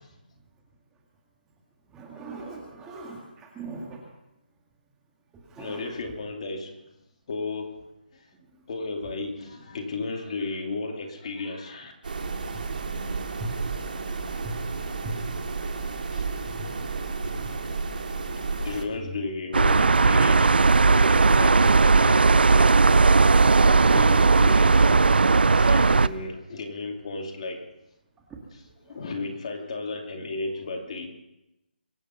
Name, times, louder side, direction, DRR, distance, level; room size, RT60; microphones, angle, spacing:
voice 1, 1.9-4.0 5.5-5.8 12.5-13.5 14.4-14.5 15.0-15.1 16.5-16.7 19.0-19.2 25.7-26.2 28.3-28.4 28.9-29.0, right 2 dB, 10° right, 2.0 m, -39 dB
voice 2, 5.6-6.8 7.3-8.3 8.7-11.9 16.1-16.3 18.4-20.5 20.9-25.1 25.5-27.7 28.5-31.1, left 3 dB, 40° left, 2.6 m, -34 dB
sound 1, 12.0-18.8, right 4 dB, 60° right, 2.2 m, -32 dB
sound 2, 19.5-26.1, right 4 dB, 80° right, 0.5 m, -17 dB
24.0 x 8.5 x 5.7 m
figure-of-eight pair, 160°, 5 cm